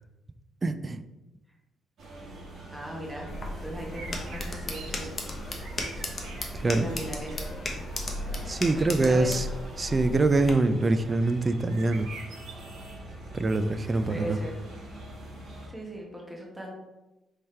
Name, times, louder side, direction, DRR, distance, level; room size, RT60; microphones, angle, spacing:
voice 1, 0.6-1.0 6.5-6.8 8.5-9.5 9.8-12.1 13.3-14.4, right 2 dB, 30° right, 11 dB, 0.3 m, -24 dB
sound 1, 2.0-15.7, right 2 dB, 60° right, 1.4 m, -44 dB
voice 2, 2.7-3.3 3.6-5.1 6.8-7.5 8.3-9.3 14.1-14.5 15.7-16.8, right 1 dB, 5° right, -2 dB, 1.1 m, -38 dB
sound 2, 3.3-10.5, left 1 dB, 35° left, 0.8 m, -36 dB
sound 3, 3.9-5.1 5.4-6.5 6.9-7.3 11.7-12.5, right 4 dB, 85° right, 0.8 m, -44 dB
3.3 x 3.2 x 4.3 m, 1.0 s
cardioid pair, 90°, 0 cm